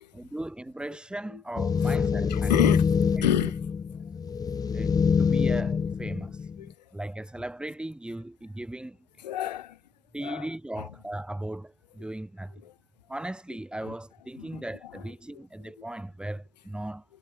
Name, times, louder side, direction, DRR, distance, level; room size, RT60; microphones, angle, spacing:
voice 1, 0.1-2.6 3.2-3.3 4.7-6.5 6.9-9.0 10.1-12.5 13.1-17.0, right 1 dB, 5° right, 3.6 m, -37 dB
sound 1, 1.6-6.7, left 6 dB, 15° left, 1.1 m, -25 dB
voice 2, 2.3-3.5 4.6-4.7 6.6-6.7 9.2-9.8 10.2-10.5 12.6-12.7 13.8-13.9 14.4-14.6, left 12 dB, 80° left, 3.0 m, -29 dB
hypercardioid pair, 110°, 21 cm